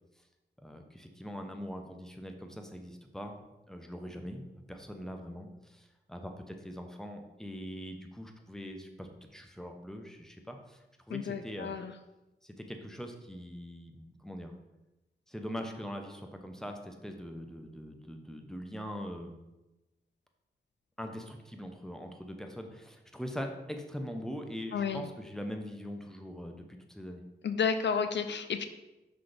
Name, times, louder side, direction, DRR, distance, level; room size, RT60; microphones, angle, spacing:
voice 1, 0.6-3.4 3.7-11.8 12.4-14.5 15.3-19.4 21.0-27.2, equal, 5° left, 4 dB, 1.0 m, -42 dB
voice 2, 11.1-11.9 24.7-25.1 27.4-28.7, left 6 dB, 80° left, 9 dB, 0.5 m, -31 dB
5.6 x 4.2 x 5.1 m, 1.0 s
cardioid pair, 55°, 18 cm